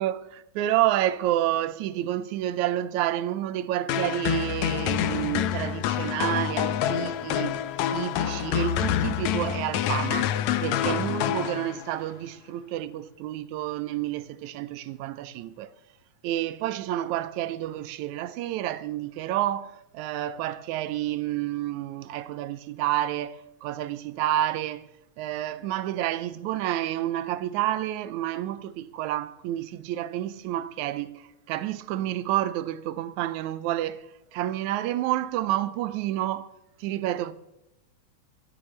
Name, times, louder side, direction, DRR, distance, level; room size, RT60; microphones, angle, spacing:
voice 1, 0.0-7.6 7.9-15.7 16.2-24.9 25.2-36.5 36.8-37.3, right 13 dB, 85° right, 2.0 m, -29 dB
sound 1, 3.9-12.0, left 10 dB, 80° left, 2.0 m, -27 dB
22.0 x 13.0 x 3.2 m
omnidirectional pair, 3.3 m